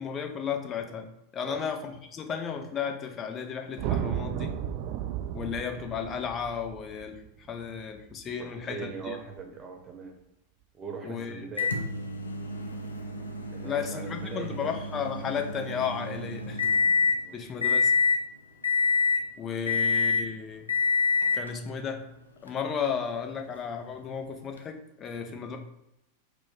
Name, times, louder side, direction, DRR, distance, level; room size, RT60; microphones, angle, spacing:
voice 1, 0.0-4.6 5.3-7.2 7.5-9.2 11.0-11.4 13.6-16.6 17.3-17.9 19.4-20.7 21.3-22.1 22.4-25.6, left 7 dB, 25° left, 4 dB, 0.5 m, -34 dB
sound 1, 3.8-8.2, right 10 dB, 45° right, 0.3 m, -34 dB
voice 2, 8.4-10.1 10.7-11.8 13.5-14.8 17.2-17.5 19.6-19.7, right 5 dB, 20° right, 2 dB, 0.9 m, -41 dB
Microwave oven, 11.6-17.2 17.6-18.2 18.6-19.3 19.7-20.3 20.7-21.5 22.5-22.6 24.6-24.7, left 5 dB, 75° left, 0.5 m, -27 dB
4.5 x 2.1 x 4.2 m, 0.84 s
figure-of-eight pair, 90°, 0 cm